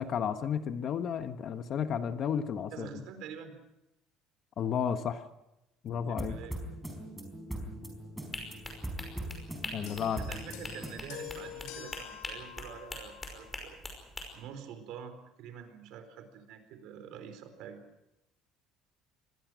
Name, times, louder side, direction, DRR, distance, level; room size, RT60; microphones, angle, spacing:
voice 1, 0.0-3.0 4.6-5.3 5.8-6.4 9.7-10.2, left 8 dB, 40° left, 9 dB, 1.3 m, -32 dB
voice 2, 2.7-3.5 6.1-6.5 10.2-13.8 14.3-17.8, right 8 dB, 60° right, 8 dB, 4.3 m, -46 dB
sound 1, 5.9-11.0, right 1 dB, 5° right, 4.4 m, -41 dB
sound 2, 8.3-14.3, left 2 dB, 15° left, 5.4 m, -42 dB
sound 3, 9.9-13.5 14.4-14.5, left 11 dB, 75° left, 5.3 m, -47 dB
25.5 x 20.5 x 6.4 m, 0.90 s
cardioid pair, 165°, 0 cm